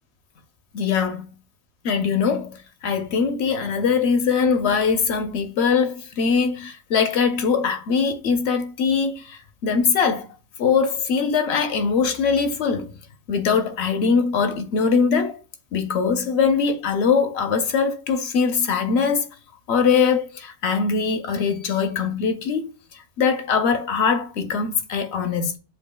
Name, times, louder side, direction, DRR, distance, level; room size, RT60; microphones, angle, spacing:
voice 1, 0.7-1.2 1.8-10.3 10.6-12.9 13.3-15.4 15.7-19.2 19.7-22.6 22.9-25.6, left 5 dB, 65° left, 0.8 m, -22 dB
7.2 x 2.5 x 2.2 m
omnidirectional pair, 1.3 m